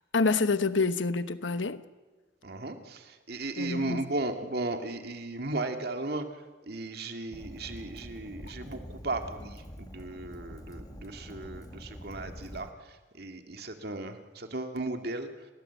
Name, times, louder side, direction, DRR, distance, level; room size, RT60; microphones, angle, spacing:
voice 1, 0.1-1.8 3.6-4.0, left 4 dB, 90° left, 1.1 m, -27 dB
voice 2, 2.4-15.3, right 2 dB, 55° right, 2.3 m, -36 dB
Fire, 7.3-12.7, equal, 20° left, 1.6 m, -45 dB
30.0 x 19.0 x 8.2 m
head